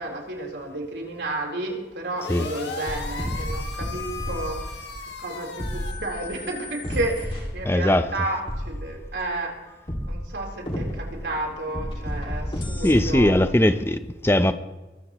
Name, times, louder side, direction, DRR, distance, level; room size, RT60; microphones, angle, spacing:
voice 1, 0.0-4.8 5.2-9.7 10.1-13.3, right 2 dB, 85° right, 4.0 m, -32 dB
sound 1, 2.2-5.9, left 4 dB, 80° left, 1.9 m, -36 dB
sound 2, 2.4-5.0 5.6-7.9 8.5-9.3 9.9-13.6, equal, 30° left, 2.3 m, -32 dB
voice 2, 7.6-8.1 12.8-14.5, left 1 dB, 15° left, 0.7 m, -20 dB
23.0 x 15.0 x 3.1 m
head